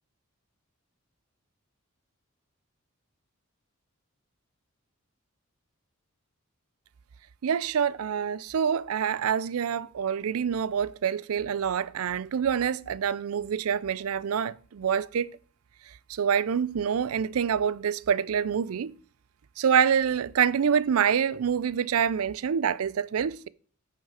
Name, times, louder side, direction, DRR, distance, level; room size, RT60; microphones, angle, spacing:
voice 1, 7.4-15.3 16.1-18.9 19.6-23.5, right 7 dB, 75° right, 0.4 m, -26 dB
8.8 x 5.6 x 5.0 m
head